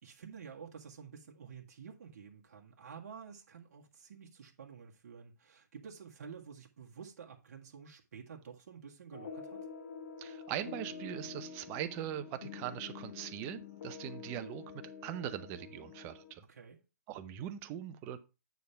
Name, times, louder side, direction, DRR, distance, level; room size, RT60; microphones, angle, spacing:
voice 1, 0.0-9.7 16.5-16.8, right 6 dB, 55° right, 1.6 m, -50 dB
sound 1, 9.1-16.3, left 6 dB, 50° left, 1.0 m, -47 dB
voice 2, 10.2-14.6 15.0-16.5 17.1-18.2, right 11 dB, 20° right, 0.6 m, -41 dB
9.3 x 3.5 x 5.7 m
hypercardioid pair, 150°, 10 cm